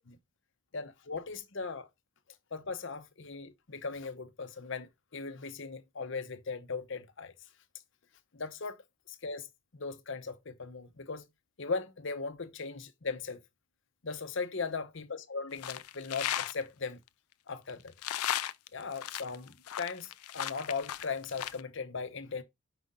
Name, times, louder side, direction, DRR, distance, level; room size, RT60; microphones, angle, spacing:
voice 1, 0.7-1.9 2.5-7.3 8.3-8.8 9.1-9.5 9.7-11.2 11.6-13.4 14.0-17.0 17.5-17.9 18.3-18.4 18.7-22.4, left 4 dB, 55° left, 0.8 m, -38 dB
sound 1, 15.5-16.5 17.7-21.6, left 12 dB, 90° left, 0.4 m, -35 dB
5.3 x 5.0 x 3.7 m
head